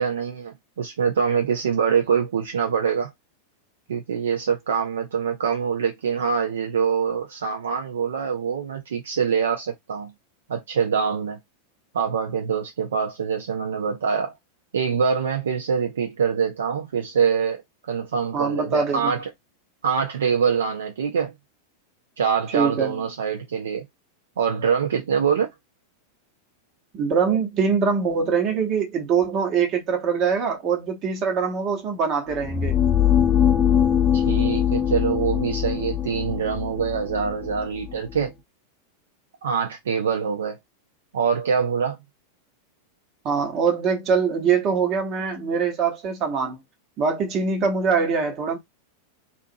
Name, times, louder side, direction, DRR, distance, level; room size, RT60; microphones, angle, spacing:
voice 1, 0.0-3.1 3.9-10.1 10.5-11.4 11.9-14.3 14.7-17.6 17.9-19.2 19.8-21.3 22.2-23.9 24.4-25.5 34.1-38.3 39.4-40.6 41.1-42.0, right 6 dB, 65° right, 0.4 m, -24 dB
voice 2, 18.3-19.1 22.5-23.0 26.9-32.8 43.2-46.6 47.0-48.6, right 6 dB, 35° right, 1.0 m, -23 dB
sound 1, 32.3-38.2, left 9 dB, 20° left, 0.5 m, -22 dB
2.7 x 2.4 x 2.6 m
figure-of-eight pair, 90°, 0 cm